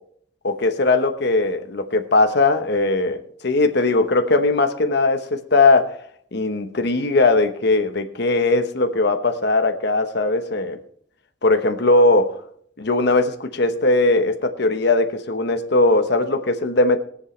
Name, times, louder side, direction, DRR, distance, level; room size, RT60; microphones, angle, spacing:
voice 1, 0.4-3.2 3.4-6.0 6.3-10.8 11.4-12.4 12.8-17.0, left 2 dB, 60° left, 6 dB, 1.1 m, -19 dB
22.0 x 7.5 x 3.3 m, 0.64 s
head